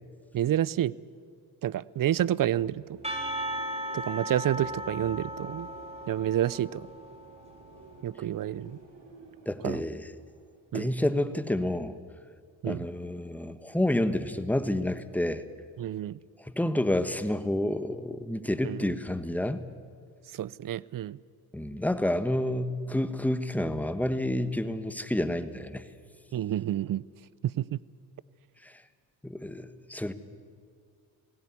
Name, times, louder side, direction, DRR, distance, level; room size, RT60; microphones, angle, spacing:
voice 1, 0.3-0.9 1.6-3.0 3.9-5.7 6.1-6.9 8.0-8.8 9.6-9.8 10.7-10.9 12.6-12.9 15.8-16.2 18.6-18.9 20.3-21.2 26.3-27.0 27.4-27.8, right 12 dB, 45° right, 23 dB, 0.6 m, -29 dB
sound 1, 2.1-11.2, right 3 dB, 70° right, 3.5 m, -51 dB
Percussion / Church bell, 3.0-7.6, equal, 15° right, 4.1 m, -37 dB
voice 2, 9.4-10.0 10.7-12.0 12.6-15.4 16.4-19.7 21.5-25.9 28.6-28.7 29.2-30.1, left 1 dB, 5° left, 11 dB, 1.3 m, -29 dB
17.5 x 17.0 x 9.6 m, 2.2 s
supercardioid pair, 65°, 47 cm